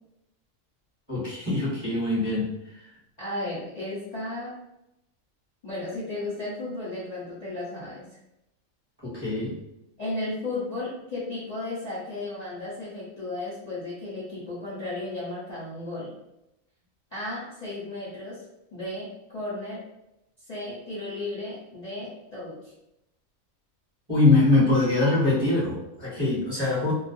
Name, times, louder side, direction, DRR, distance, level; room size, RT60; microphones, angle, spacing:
voice 1, 1.1-2.5 9.0-9.6 24.1-26.9, left 2 dB, 20° right, -10 dB, 0.8 m, -23 dB
voice 2, 3.2-4.6 5.6-8.2 10.0-16.1 17.1-18.4 18.7-19.8 20.4-22.7, left 2 dB, 40° left, -10 dB, 0.6 m, -34 dB
2.4 x 2.1 x 2.5 m, 0.87 s
omnidirectional pair, 1.4 m